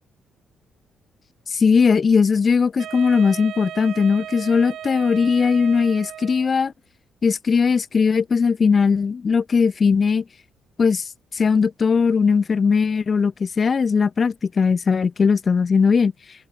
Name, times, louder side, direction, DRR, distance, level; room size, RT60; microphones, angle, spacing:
voice 1, 1.5-6.7 7.2-10.2 10.8-16.1, left 5 dB, 40° left, 0.9 m, -19 dB
Wind instrument woodwind instrument, 2.8-6.7, right 11 dB, 70° right, 2.3 m, -36 dB
open air
cardioid pair, 90°, 0 cm